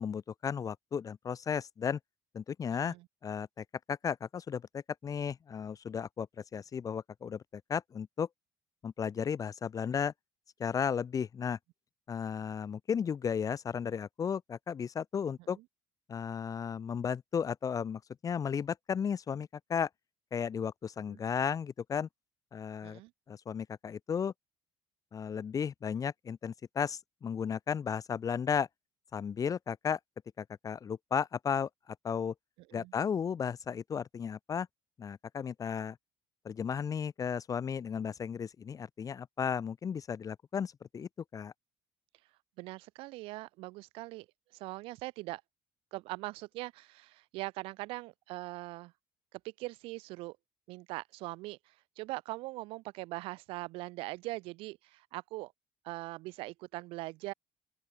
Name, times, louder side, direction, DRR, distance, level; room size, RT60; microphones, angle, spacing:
voice 1, 0.0-2.0 2.3-2.9 3.2-8.3 8.8-10.1 10.6-11.6 12.1-15.6 16.1-19.9 20.3-22.1 22.5-23.0 23.3-24.3 25.1-28.7 29.1-30.0 30.4-32.3 32.7-34.7 35.0-36.0 36.4-41.5, left 7 dB, 40° left, 1.1 m, -34 dB
voice 2, 42.6-44.3 44.5-45.4 45.9-48.9 49.4-50.4 50.7-55.5 55.8-57.3, right 21 dB, 80° right, 4.1 m, -41 dB
open air
supercardioid pair, 85°, 9 cm